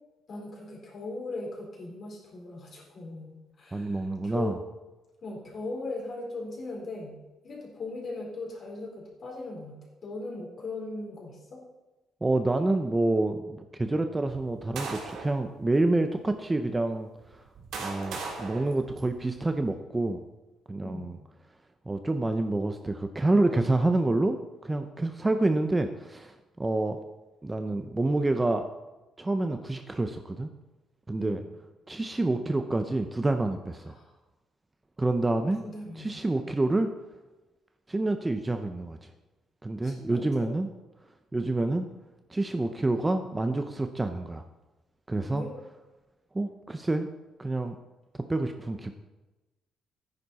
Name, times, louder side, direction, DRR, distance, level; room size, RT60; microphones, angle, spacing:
voice 1, 0.3-4.6 5.2-7.2 7.4-11.6 20.8-21.1 31.2-31.4 33.8-34.1 35.6-36.2 39.8-40.5 45.3-45.5, left 2 dB, 40° left, -1 dB, 3.9 m, -39 dB
voice 2, 3.7-4.6 12.2-17.1 17.8-20.2 20.7-21.2 21.9-27.0 27.4-28.7 29.2-30.5 31.1-31.4 31.9-34.0 35.0-35.6 36.0-36.9 37.9-39.0 39.6-40.7 41.3-41.9 42.3-44.4 45.1-45.4 46.3-47.1 47.4-47.8 48.3-48.9, right 2 dB, 15° right, 7 dB, 0.6 m, -27 dB
sound 1, 14.3-15.4 16.2-16.3 17.2-19.5, right 4 dB, 75° right, 3.2 m, -39 dB
14.0 x 10.0 x 4.1 m, 1.1 s
cardioid pair, 155°, 0 cm